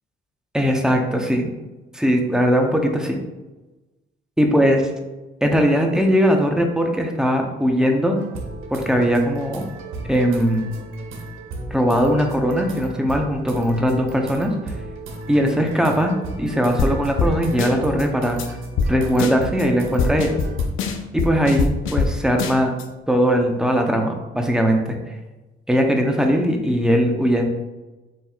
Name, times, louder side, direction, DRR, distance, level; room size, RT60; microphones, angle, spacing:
voice 1, 0.5-1.5 1.9-3.2 4.4-4.9 5.4-8.2 8.7-9.6 10.0-10.6 11.7-14.5 15.3-18.6 18.9-20.4 21.1-22.7 23.1-24.8 25.7-27.5, equal, 5° right, 2 dB, 0.7 m, -19 dB
sound 1, 8.1-20.7, right 2 dB, 85° right, 0.8 m, -35 dB
sound 2, 16.8-16.9 17.2-17.3 17.6-18.0 18.4-18.5 18.8-18.9 19.2-19.6 20.0-22.1 22.4-22.8, left 4 dB, 90° left, 0.5 m, -22 dB
7.3 x 2.7 x 2.4 m, 1.1 s
cardioid pair, 90°, 20 cm